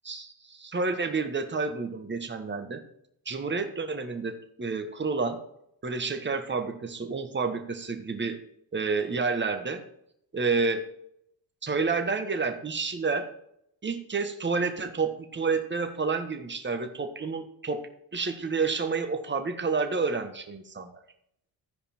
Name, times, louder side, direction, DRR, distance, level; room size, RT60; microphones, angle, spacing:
voice 1, 0.0-2.8 3.2-5.4 5.8-8.4 8.7-9.8 10.3-10.8 11.6-13.3 13.8-17.8 18.1-21.0, right 4 dB, 20° right, 6 dB, 1.4 m, -29 dB
14.0 x 5.0 x 4.4 m, 0.75 s
supercardioid pair, 70°, 50 cm